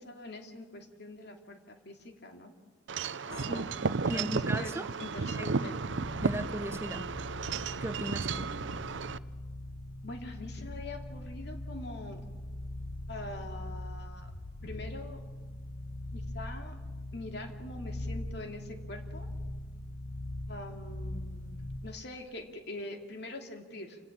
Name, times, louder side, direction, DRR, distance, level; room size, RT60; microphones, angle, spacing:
voice 1, 0.0-2.5 3.2-3.7 4.0-5.8 10.0-12.3 13.1-14.3 14.6-15.2 16.1-16.8 17.1-19.3 20.5-24.0, left 2 dB, 60° left, 2.7 m, -44 dB
Wind chime / Wind, 2.9-9.2, right 4 dB, 75° right, 0.6 m, -33 dB
voice 2, 4.1-4.9 5.4-5.6 6.2-7.1 7.8-8.5, right 1 dB, 15° right, 0.9 m, -37 dB
sound 1, 5.9-22.0, left 1 dB, 80° left, 1.3 m, -41 dB
28.0 x 17.5 x 7.3 m
head